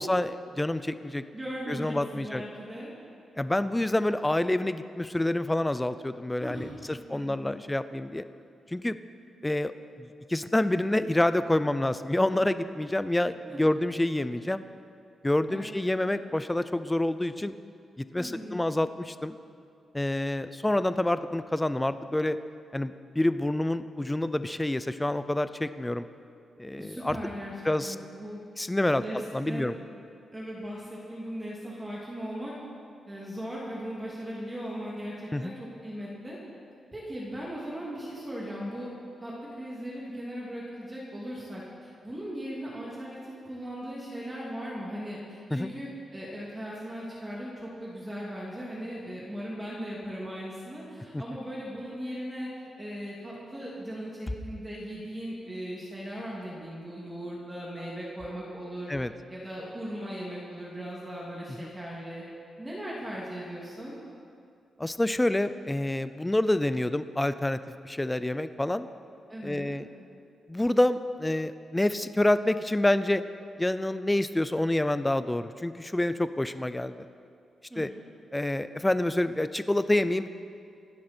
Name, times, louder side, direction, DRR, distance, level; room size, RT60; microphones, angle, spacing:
voice 1, 0.0-1.2 1.7-2.4 3.4-8.2 8.7-9.0 9.4-14.6 15.2-17.5 18.0-19.4 19.9-22.4 22.7-26.1 26.6-27.2 27.7-28.0 28.6-29.0 29.3-29.7 35.3-35.5 45.5-45.7 58.9-59.1 61.6-61.7 64.8-67.6 67.8-68.9 69.4-69.9 70.5-73.2 73.6-77.0 77.8-77.9 78.3-80.3, left 1 dB, 10° left, 12 dB, 0.5 m, -27 dB
voice 2, 1.3-2.9 6.4-6.8 7.1-7.6 13.4-13.6 15.5-15.7 16.0-16.2 18.1-18.7 26.8-28.4 29.0-29.9 30.3-32.5 33.1-36.4 36.9-38.9 39.2-52.5 52.8-58.9 59.3-62.2 62.6-64.0 69.3-69.7 77.7-77.9, equal, 10° right, -6 dB, 2.6 m, -38 dB
27.0 x 11.5 x 4.5 m, 2.5 s
wide cardioid pair, 165°, 0 cm